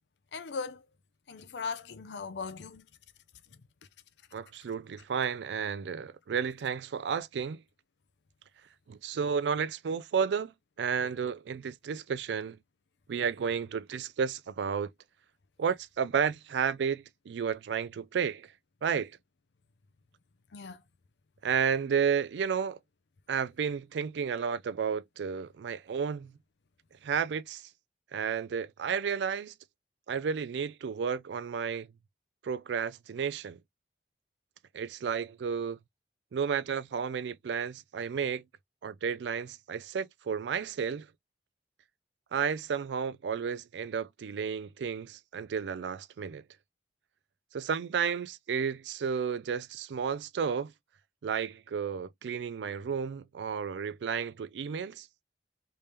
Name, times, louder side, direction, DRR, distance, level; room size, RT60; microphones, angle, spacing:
voice 1, 0.3-0.8 1.3-2.8 20.5-20.8, left 4 dB, 80° left, 0.5 m, -38 dB
voice 2, 4.3-7.6 8.9-10.5 10.8-12.6 13.1-14.9 15.6-18.5 18.8-19.1 21.4-22.8 23.3-26.3 27.0-27.6 28.1-29.5 30.1-31.9 32.4-33.6 34.7-35.8 36.3-38.4 38.8-41.1 42.3-46.4 47.5-50.7 51.2-55.1, right 6 dB, 80° right, 0.4 m, -32 dB
3.4 x 3.3 x 2.8 m
head